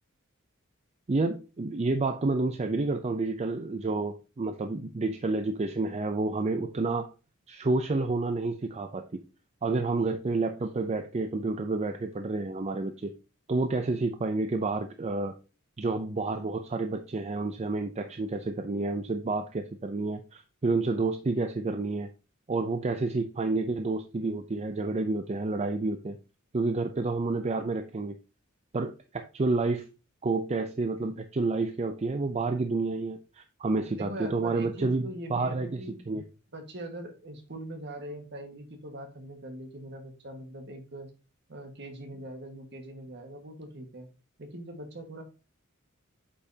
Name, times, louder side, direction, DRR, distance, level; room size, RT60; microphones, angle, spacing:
voice 1, 1.1-7.1 7.5-9.2 9.6-13.1 13.5-15.3 15.8-22.1 22.5-26.2 26.5-28.1 28.7-29.9 30.2-36.2, right 3 dB, 30° right, 7 dB, 0.5 m, -29 dB
voice 2, 33.9-36.0 36.5-41.1 41.5-44.1 44.4-45.2, right 1 dB, 55° right, 4 dB, 1.6 m, -42 dB
8.4 x 5.4 x 2.8 m, 0.32 s
head